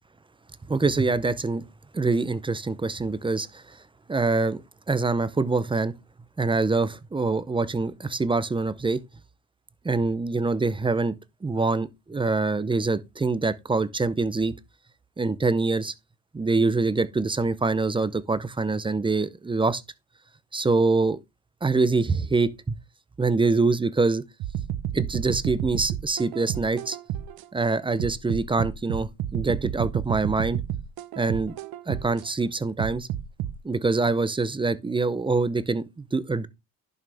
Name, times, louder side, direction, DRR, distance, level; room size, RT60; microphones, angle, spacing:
voice 1, 0.7-1.6 1.9-3.8 4.1-4.6 4.9-5.9 6.4-9.0 9.8-11.1 11.4-14.5 15.2-15.9 16.3-19.8 20.5-21.2 21.6-22.5 23.2-24.2 24.9-27.0 27.5-30.6 31.2-31.5 31.9-33.1 33.6-36.5, right 3 dB, 15° right, 0.6 m, -25 dB
sound 1, 24.4-27.5 28.0-32.3 32.8-33.6, right 11 dB, 70° right, 1.0 m, -31 dB
11.0 x 6.3 x 3.4 m
cardioid pair, 135°, 38 cm